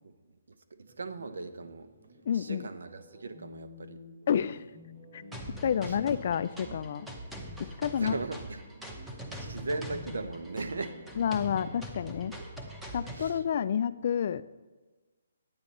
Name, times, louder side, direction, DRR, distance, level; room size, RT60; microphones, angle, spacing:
voice 1, 0.8-1.9 2.3-4.0 5.9-6.0 8.0-8.6 9.3-11.0 13.1-13.4, right 3 dB, 85° right, 11 dB, 0.8 m, -38 dB
sound 1, 0.9-14.1, left 1 dB, 40° right, 3.6 m, -52 dB
voice 2, 2.3-2.7 4.3-4.7 5.1-5.2 5.6-7.1 7.8-8.2 11.2-12.3 12.9-14.4, left 8 dB, 45° left, 15 dB, 0.3 m, -29 dB
sound 2, 5.3-13.3, right 1 dB, 5° right, 0.7 m, -43 dB
9.7 x 8.7 x 4.2 m, 1.3 s
hypercardioid pair, 165°, 0 cm